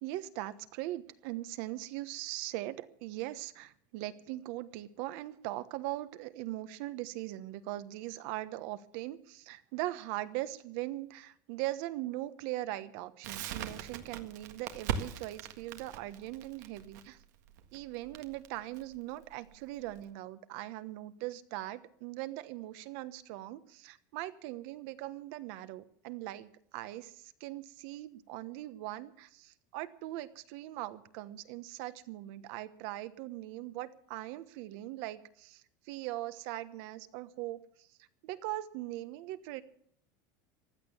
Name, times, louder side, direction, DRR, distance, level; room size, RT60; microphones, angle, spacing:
voice 1, 0.0-17.2 17.7-37.9 38.2-39.6, right 16 dB, 65° right, 13 dB, 1.2 m, -40 dB
Crackle, 13.2-20.0, right 8 dB, 90° right, 1.7 m, -40 dB
15.5 x 11.5 x 7.2 m, 0.64 s
cardioid pair, 155°, 9 cm